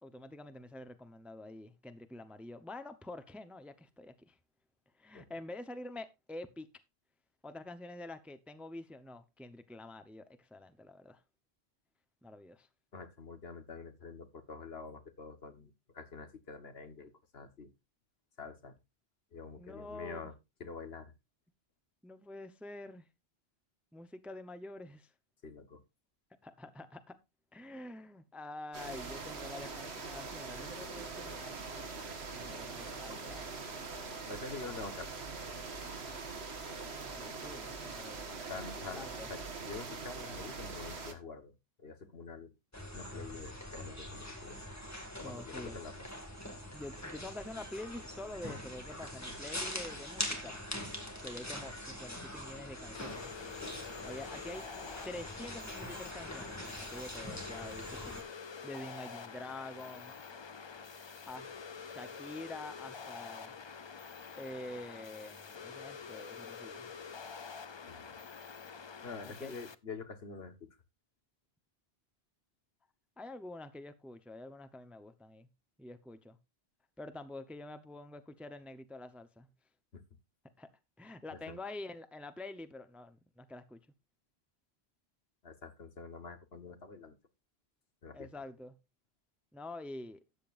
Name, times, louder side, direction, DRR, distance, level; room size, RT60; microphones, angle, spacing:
voice 1, 0.0-4.4 5.0-6.7 7.4-11.2 12.2-12.7 19.6-20.3 22.0-23.1 23.9-25.1 26.4-27.2 27.5-31.6 32.3-33.5 34.4-34.6 37.0-39.3 45.2-45.8 46.7-50.6 51.2-53.3 54.0-54.7 55.0-58.2 58.6-60.1 61.3-61.5 61.8-63.6 64.4-66.9 69.3-69.5 73.2-75.5 75.8-76.4 77.0-79.5 80.6-80.7 81.0-83.8 88.1-88.7 89.5-90.2, left 2 dB, ahead, 0.7 m, -47 dB
voice 2, 12.9-17.7 18.4-18.7 19.3-20.3 20.6-21.1 25.4-25.8 34.3-35.1 38.5-42.5 42.9-44.6 45.2-46.1 67.9-68.2 69.0-70.7 79.9-80.0 81.3-81.6 85.4-87.2 88.0-88.3, left 4 dB, 70° left, 1.5 m, -46 dB
sound 1, 28.7-41.1, right 4 dB, 75° right, 1.7 m, -43 dB
sound 2, 42.7-58.2, left 1 dB, 15° left, 2.0 m, -43 dB
sound 3, 52.9-69.7, left 6 dB, 40° left, 0.4 m, -47 dB
13.0 x 9.0 x 2.5 m
omnidirectional pair, 1.1 m